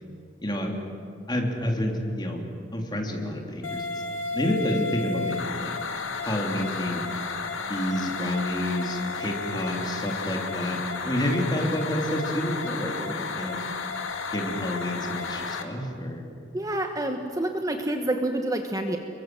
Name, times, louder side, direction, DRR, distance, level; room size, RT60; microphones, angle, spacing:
voice 1, 0.4-0.7 1.3-2.4 2.7-3.9 4.3-5.7 6.3-7.0 7.7-10.8 11.0-13.6 14.3-16.2, equal, 20° left, 1 dB, 3.4 m, -29 dB
sound 1, 3.6-15.6, left 4 dB, 80° left, 2.1 m, -32 dB
voice 2, 16.5-19.0, right 1 dB, 20° right, 4 dB, 1.3 m, -28 dB
28.5 x 23.0 x 7.8 m, 2.7 s
head